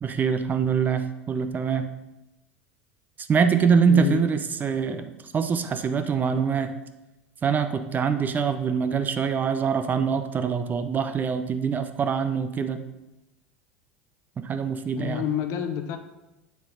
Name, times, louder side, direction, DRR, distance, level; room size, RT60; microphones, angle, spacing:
voice 1, 0.0-1.9 3.2-6.7 7.4-12.8 14.4-15.2, right 6 dB, 30° right, 9 dB, 0.7 m, -24 dB
voice 2, 3.8-4.3 14.9-16.0, left 9 dB, 55° left, 8 dB, 0.9 m, -28 dB
7.7 x 7.1 x 3.9 m, 0.98 s
hypercardioid pair, 75°, 6 cm